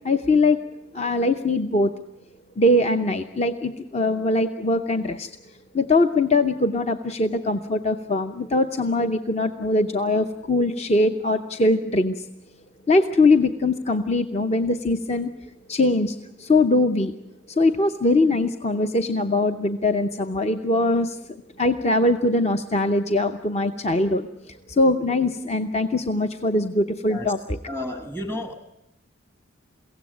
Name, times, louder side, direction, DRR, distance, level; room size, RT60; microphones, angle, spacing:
voice 1, 0.0-0.6 0.9-1.9 2.6-12.3 12.9-17.1 17.5-27.6, left 2 dB, 30° left, 7 dB, 0.7 m, -22 dB
voice 2, 27.7-28.5, left 1 dB, 10° left, 6 dB, 1.3 m, -31 dB
23.0 x 16.5 x 9.3 m, 0.85 s
head